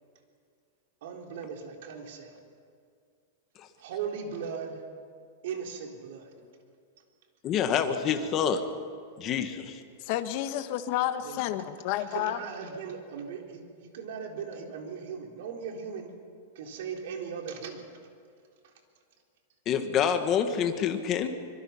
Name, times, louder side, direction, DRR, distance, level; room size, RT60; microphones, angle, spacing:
voice 1, 1.0-2.4 3.8-4.8 5.4-6.3 11.2-11.7 12.0-16.1 16.6-17.9 18.6-18.7, right 6 dB, 60° right, 2 dB, 3.6 m, -38 dB
voice 2, 7.4-8.6 9.2-9.8 19.6-21.3, left 8 dB, 25° left, 6 dB, 1.5 m, -27 dB
voice 3, 10.0-12.4, left 12 dB, 40° left, 9 dB, 1.2 m, -30 dB
25.0 x 22.0 x 5.7 m, 2.2 s
supercardioid pair, 165°, 0 cm